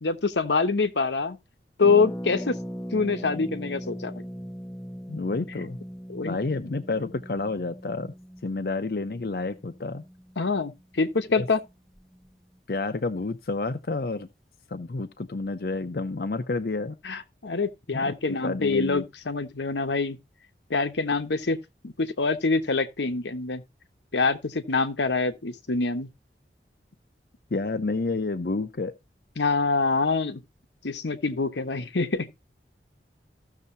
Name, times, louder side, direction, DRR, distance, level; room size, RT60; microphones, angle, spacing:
voice 1, 0.0-1.4 1.8-2.6 2.9-4.1 6.1-6.4 10.4-11.6 17.0-20.2 20.7-21.6 21.8-23.6 24.1-26.1 29.4-30.4 30.8-32.4, left 4 dB, 90° left, 1.0 m, -25 dB
Harp, 1.8-11.4 11.7-11.8 11.9-12.3, equal, ahead, 0.6 m, -39 dB
voice 2, 5.1-5.8 6.2-8.1 8.4-10.0 11.4-11.5 12.7-14.3 14.7-17.0 17.9-19.0 27.5-28.9, left 3 dB, 60° left, 0.6 m, -29 dB
15.0 x 6.6 x 2.6 m
head